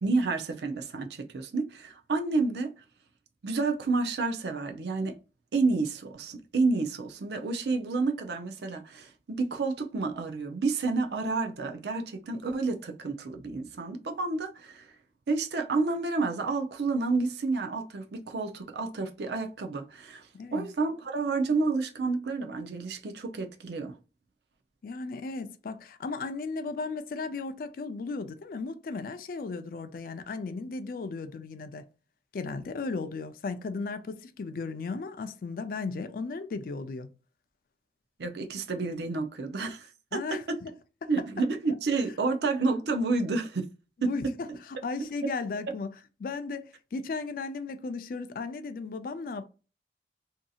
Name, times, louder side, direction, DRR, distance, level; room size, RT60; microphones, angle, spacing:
voice 1, 0.0-2.7 3.4-5.2 5.5-14.9 15.3-24.0 38.2-40.6 41.1-43.7 44.0-44.1, right 3 dB, 70° right, 0.5 m, -30 dB
voice 2, 20.3-20.7 24.8-31.8 32.3-37.1 40.1-40.7 41.0-41.1 44.0-45.9 46.2-49.4, left 4 dB, 50° left, 0.3 m, -35 dB
2.7 x 2.6 x 2.3 m
head